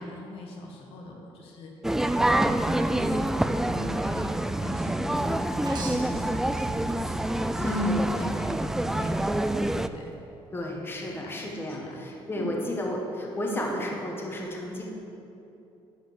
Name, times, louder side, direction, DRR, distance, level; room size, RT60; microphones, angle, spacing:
voice 1, 0.0-1.7 2.9-3.4 3.7-6.7 7.0-10.1 11.1-11.4 11.7-12.1 12.3-12.6 13.7-13.9, left 2 dB, 70° left, 0 dB, 1.3 m, -41 dB
sound 1, 1.8-9.9, right 1 dB, 5° right, 0.3 m, -27 dB
sound 2, 5.6-7.3 7.7-8.3 9.9-10.0, right 3 dB, 45° right, 1.2 m, -40 dB
voice 2, 7.6-8.1 10.5-14.8, left 1 dB, 20° left, -1 dB, 1.5 m, -31 dB
10.5 x 5.0 x 6.6 m, 2.9 s
cardioid pair, 115°, 10 cm